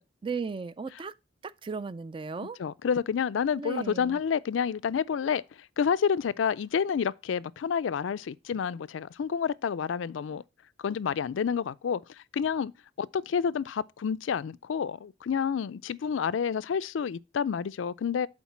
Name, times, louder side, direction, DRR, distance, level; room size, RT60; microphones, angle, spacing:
voice 1, 0.2-1.1 1.4-2.6 3.6-4.2, right 4 dB, 25° right, 0.3 m, -35 dB
voice 2, 2.6-5.4 5.8-10.4 10.8-12.0 12.3-12.7 13.0-18.3, left 7 dB, 85° left, 0.4 m, -29 dB
7.3 x 4.5 x 5.8 m
head